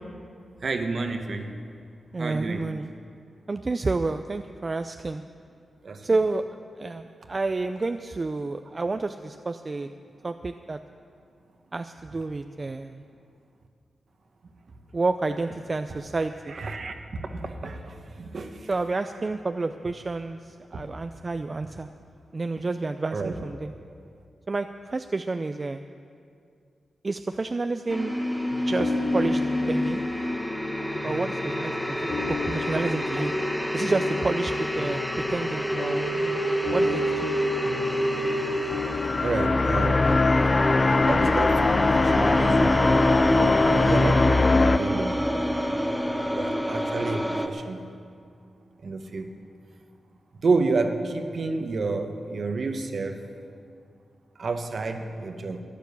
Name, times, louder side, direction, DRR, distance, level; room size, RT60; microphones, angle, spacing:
voice 1, 0.6-1.5 2.2-2.7 5.8-6.1 16.5-16.9 17.3-18.7 23.1-23.3 39.2-40.2 41.0-41.7 42.0-42.9 43.3-44.3 44.6-45.1 46.3-47.9 48.8-49.3 50.4-53.2 54.4-55.6, right 3 dB, 60° right, 6 dB, 1.2 m, -30 dB
voice 2, 2.1-2.9 3.5-5.2 6.0-6.4 6.8-9.9 10.2-10.8 11.7-13.0 14.9-16.6 18.7-21.9 22.3-23.7 24.5-25.8 27.0-28.2 28.7-29.4 29.7-30.0 31.0-33.4 33.7-36.4 36.7-37.3, right 3 dB, 35° right, 8 dB, 0.4 m, -29 dB
sound 1, 27.9-47.5, equal, ahead, 1.0 m, -27 dB
sound 2, 28.5-43.8, left 5 dB, 60° left, 0.8 m, -37 dB
sound 3, 38.6-44.8, left 3 dB, 35° left, 0.4 m, -21 dB
13.5 x 10.5 x 7.0 m, 2.3 s
cardioid pair, 80°, 0 cm